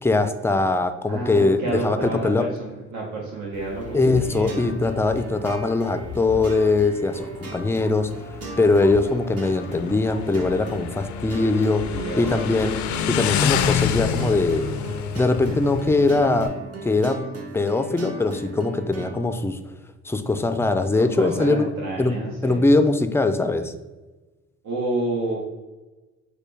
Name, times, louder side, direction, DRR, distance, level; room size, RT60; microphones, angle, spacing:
voice 1, 0.0-2.5 3.9-8.1 8.6-12.8 13.1-14.7 15.2-16.5 16.8-17.2 17.5-19.6 20.1-21.7 22.0-22.2 22.4-23.7, left 3 dB, 10° left, 8 dB, 0.4 m, -21 dB
voice 2, 1.1-4.7 11.8-12.3 20.9-22.6 24.6-25.4, right 2 dB, 75° right, -3 dB, 1.0 m, -30 dB
Motorcycle, 3.5-16.5, left 8 dB, 70° left, 0.4 m, -30 dB
sound 1, 3.8-19.2, right 3 dB, 50° right, 1.1 m, -38 dB
6.5 x 2.2 x 3.4 m, 1.2 s
cardioid pair, 90°, 30 cm